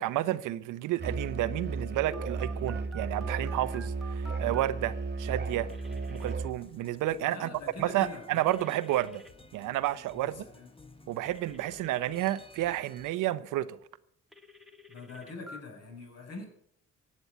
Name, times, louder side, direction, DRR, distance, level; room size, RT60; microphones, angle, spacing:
voice 1, 0.0-5.7 6.1-9.2 9.5-10.5 11.1-13.8, right 14 dB, 90° right, 0.8 m, -31 dB
Musical instrument, 1.0-6.6, right 3 dB, 35° right, 1.3 m, -34 dB
Telephone, 2.1-4.7 5.7-6.3 8.3-9.3 11.3-12.3 14.3-15.6, right 1 dB, ahead, 1.6 m, -50 dB
sound 1, 5.7-13.1, left 2 dB, 20° left, 1.4 m, -54 dB
voice 2, 7.3-8.7 10.2-10.7 14.9-16.4, left 3 dB, 55° left, 6.7 m, -44 dB
15.0 x 8.9 x 8.4 m
cardioid pair, 90°, 30 cm